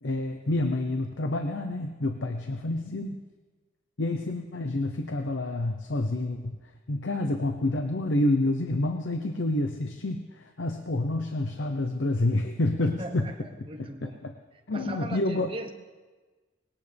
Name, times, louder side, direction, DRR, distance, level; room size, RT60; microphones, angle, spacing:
voice 1, 0.0-3.2 4.0-13.3 13.8-14.3 14.7-15.5, left 2 dB, 80° left, 5 dB, 0.9 m, -28 dB
voice 2, 12.8-14.3 14.7-15.7, right 1 dB, 30° right, 5 dB, 1.1 m, -39 dB
20.5 x 17.5 x 3.5 m, 1.3 s
head